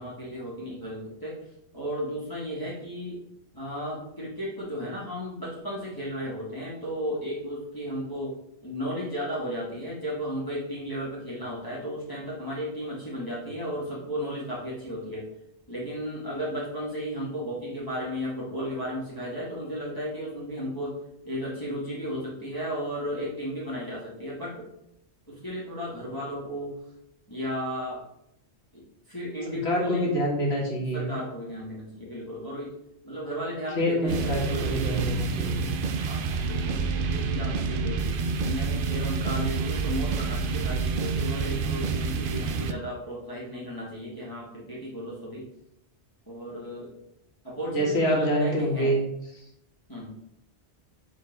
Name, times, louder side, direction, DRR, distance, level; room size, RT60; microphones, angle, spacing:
voice 1, 0.0-1.4 1.7-3.2 3.5-8.3 8.6-15.3 15.7-21.0 21.2-24.7 25.3-26.7 27.3-28.0 28.7-30.1 30.9-32.7 33.0-35.1 36.0-38.0 38.4-45.5 46.3-46.9 47.4-48.9 49.9-50.1, equal, 20° left, -7 dB, 2.0 m, -34 dB
voice 2, 29.5-31.1 33.8-35.6 47.7-49.0 49.3-49.5, equal, 65° left, -2 dB, 2.1 m, -26 dB
sound 1, 34.1-42.7, right 4 dB, 60° right, 0.7 m, -28 dB
5.1 x 4.1 x 6.0 m, 0.79 s
omnidirectional pair, 1.2 m